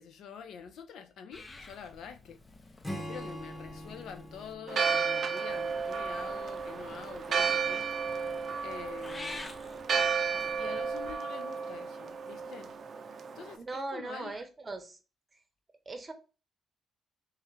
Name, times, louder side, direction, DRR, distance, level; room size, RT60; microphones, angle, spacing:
voice 1, 0.0-2.4 2.9-7.9 8.6-9.6 10.6-12.7 13.3-14.4, left 7 dB, 75° left, 0.5 m, -46 dB
Purr / Meow, 1.3-4.5 5.5-11.1, left 2 dB, 25° left, 0.5 m, -50 dB
Acoustic guitar / Strum, 2.8-6.3, equal, 10° left, 1.0 m, -43 dB
Church bell, 4.7-13.6, right 5 dB, 50° right, 0.5 m, -33 dB
voice 2, 13.6-15.0 15.9-16.1, right 2 dB, 30° right, 0.8 m, -39 dB
3.5 x 3.2 x 3.2 m
cardioid pair, 90°, 0 cm